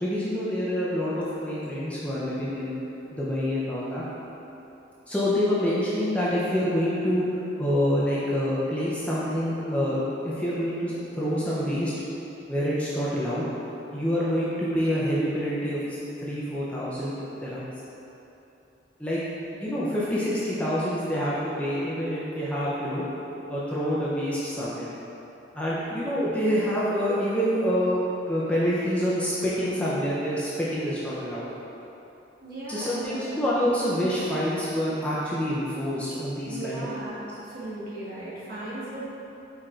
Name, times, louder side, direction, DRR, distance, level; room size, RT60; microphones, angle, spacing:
voice 1, 0.0-2.8 3.1-4.0 5.1-11.9 12.5-13.5 13.9-17.7 19.0-19.2 19.5-23.0 23.5-24.9 25.5-28.0 28.3-31.5 32.7-36.9, equal, 5° left, -9 dB, 0.5 m, -27 dB
voice 2, 32.4-33.3 36.5-37.2 37.5-39.1, right 2 dB, 50° right, -10 dB, 1.3 m, -36 dB
4.8 x 4.4 x 2.4 m, 3.0 s
head